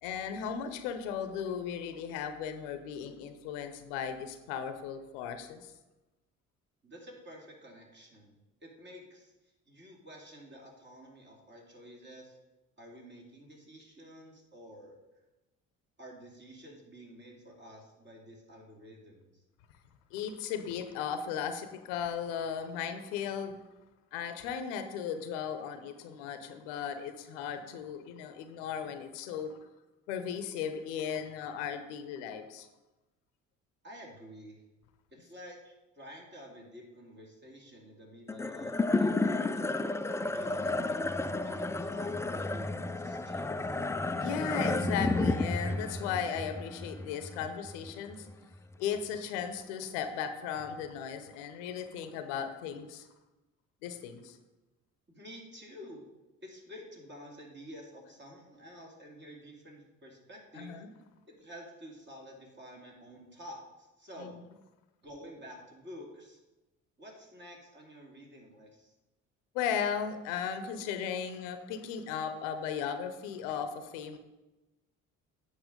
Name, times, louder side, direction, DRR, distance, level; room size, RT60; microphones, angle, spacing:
voice 1, 0.0-5.7 20.1-23.6 24.1-29.5 30.1-32.7 40.6-40.8 44.2-48.3 48.8-53.0 53.8-54.4 60.5-60.9 64.2-64.3 69.5-74.2, left 7 dB, 75° left, 9 dB, 0.8 m, -36 dB
voice 2, 6.8-8.3 8.6-12.4 12.8-15.0 16.0-19.4 33.8-34.6 35.1-43.8 55.1-56.0 56.4-60.8 61.3-64.4 65.0-66.4 67.0-68.9, equal, 30° right, 0 dB, 2.8 m, -50 dB
sound 1, 38.3-48.8, left 2 dB, 10° left, 0.4 m, -32 dB
8.4 x 5.7 x 5.1 m, 1.0 s
hypercardioid pair, 55°, 37 cm